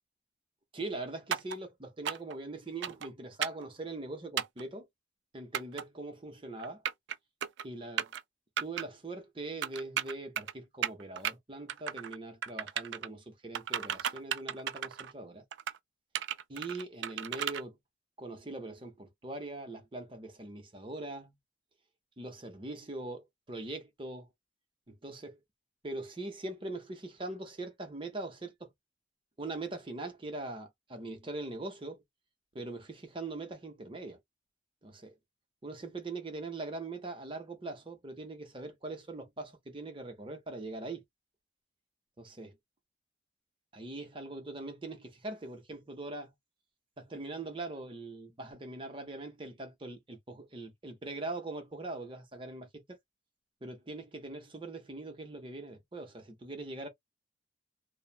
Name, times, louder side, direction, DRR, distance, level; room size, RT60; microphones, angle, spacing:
voice 1, 0.7-4.9 5.3-6.8 7.6-8.1 8.6-15.4 16.5-17.8 18.2-21.4 22.2-24.3 24.9-25.4 25.8-28.7 29.4-32.0 32.5-34.2 34.8-35.1 35.6-41.0 42.2-42.5 43.7-46.3 47.0-53.0 53.6-56.9, right 2 dB, 30° right, 0.7 m, -42 dB
sound 1, 1.3-1.6 2.0-2.3 2.8-3.1 3.4-3.6 4.4-4.6 5.5-5.8 6.6-7.1 7.4-7.6 8.0-8.2 8.6-8.8 9.6-10.5 10.8-11.3 11.7-12.2 12.4-13.1 13.5-15.1 15.5-15.8 16.1-17.6, right 9 dB, 70° right, 0.3 m, -34 dB
3.0 x 2.1 x 2.4 m
head